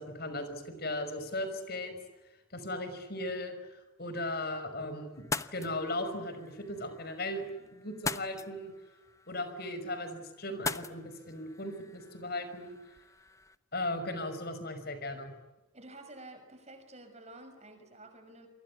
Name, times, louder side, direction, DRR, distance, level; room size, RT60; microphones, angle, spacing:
voice 1, 0.0-1.9 2.5-8.7 9.3-12.8 13.7-15.3, left 1 dB, 50° left, 9 dB, 5.5 m, -37 dB
sound 1, 5.1-13.6, left 3 dB, 15° left, 0.9 m, -42 dB
voice 2, 15.7-18.5, right 2 dB, 35° right, 7 dB, 6.1 m, -50 dB
29.0 x 24.0 x 8.5 m, 1.1 s
head